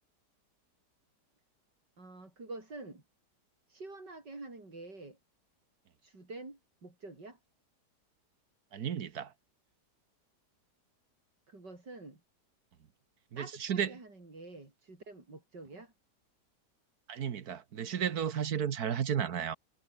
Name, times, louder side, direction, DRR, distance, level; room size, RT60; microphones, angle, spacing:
voice 1, 2.0-3.0 3.7-5.2 6.0-7.4 11.5-12.2 13.4-15.9, right 2 dB, 80° right, 6.8 m, -47 dB
voice 2, 8.7-9.3 13.3-14.0 17.1-19.6, right 8 dB, 65° right, 1.6 m, -33 dB
omnidirectional pair, 1.8 m